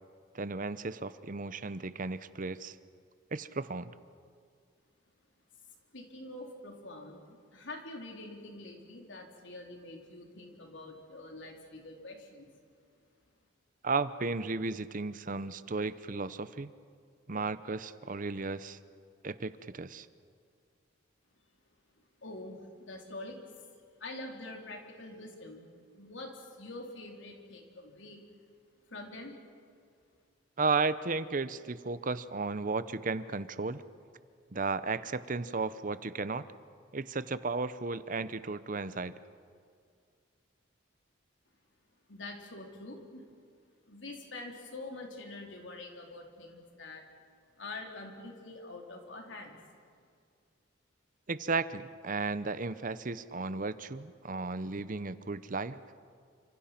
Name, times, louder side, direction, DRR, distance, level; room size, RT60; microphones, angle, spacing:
voice 1, 0.3-2.8 3.3-3.9 13.8-16.7 17.3-18.8 19.2-20.1 30.6-33.8 34.5-36.4 36.9-39.1 51.3-55.8, right 4 dB, 45° right, 14 dB, 0.8 m, -34 dB
voice 2, 5.9-12.5 22.2-23.7 24.0-25.7 25.9-28.2 28.9-29.4 42.1-43.2 43.9-47.1 47.6-49.6, left 2 dB, 70° left, 2 dB, 3.8 m, -45 dB
28.5 x 26.5 x 5.9 m, 2.2 s
head